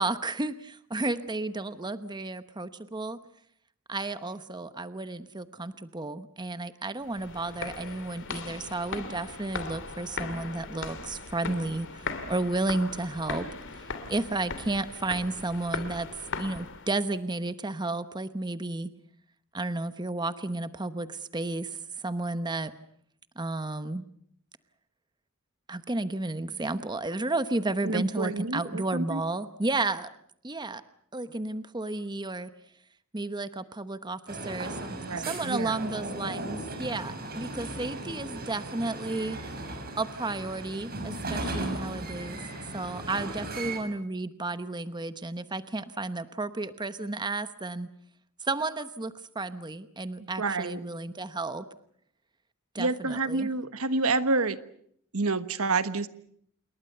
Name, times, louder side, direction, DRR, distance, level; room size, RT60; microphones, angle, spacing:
voice 1, 0.0-3.2 3.9-12.0 12.3-13.5 14.1-16.1 16.3-18.9 19.5-21.8 22.0-22.7 23.4-24.0 25.7-30.1 30.4-30.8 31.1-32.5 33.1-35.0 35.3-39.4 40.0-42.4 42.7-47.9 48.5-51.6 52.7-53.5, right 2 dB, 20° right, 11 dB, 1.0 m, -32 dB
sound 1, 7.0-17.1, left 4 dB, 60° left, 2.7 m, -39 dB
voice 2, 27.8-29.2 35.0-35.7 50.2-50.8 52.8-54.6 55.1-56.1, right 3 dB, 70° right, 12 dB, 1.3 m, -28 dB
sound 2, 34.3-43.8, right 2 dB, 45° right, 5.8 m, -37 dB
28.0 x 21.5 x 6.8 m, 0.67 s
head